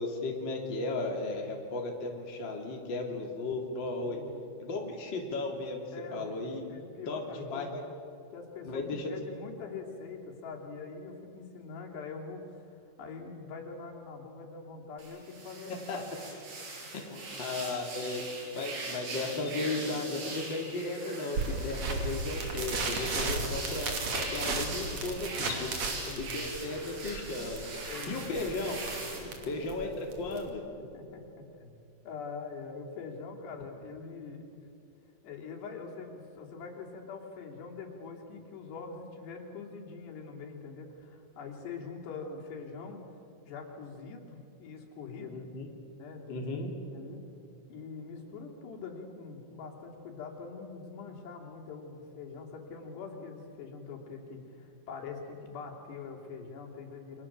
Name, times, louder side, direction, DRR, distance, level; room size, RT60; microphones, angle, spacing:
voice 1, 0.0-4.2 4.6-5.8 6.1-6.6 7.1-7.8 8.6-9.1 15.9-16.0 16.9-17.0 17.4-18.2 18.5-25.7 26.2-27.6 28.1-28.8 29.5-30.6 45.3-45.7 46.3-46.7, left 2 dB, 30° left, 1 dB, 3.0 m, -35 dB
voice 2, 4.0-4.5 5.9-6.4 6.7-7.7 8.3-16.0 16.8-17.3 24.9-26.6 27.9-28.4 29.2-29.5 30.8-31.8 32.1-34.6 35.2-43.0 43.5-45.5 46.0-47.2 47.7-57.3, left 4 dB, 80° left, 0 dB, 5.2 m, -44 dB
sound 1, 15.0-29.2, right 3 dB, 70° right, 7.2 m, -41 dB
sound 2, 21.4-30.5, right 3 dB, 45° right, 3.6 m, -35 dB
29.5 x 25.0 x 7.5 m, 2.6 s
omnidirectional pair, 4.8 m